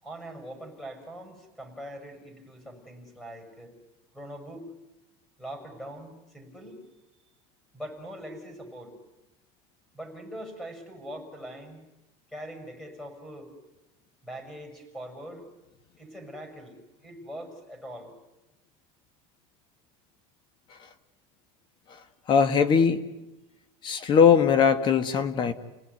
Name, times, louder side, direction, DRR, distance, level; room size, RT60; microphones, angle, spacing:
voice 1, 0.0-3.7 4.1-4.7 5.4-6.8 7.7-9.0 9.9-11.8 12.3-13.5 14.2-15.4 16.0-18.1, equal, 5° left, 6 dB, 6.4 m, -42 dB
voice 2, 22.3-23.0 23.8-25.5, left 6 dB, 35° left, 13 dB, 1.4 m, -20 dB
30.0 x 18.5 x 9.6 m, 0.99 s
supercardioid pair, 150°, 14 cm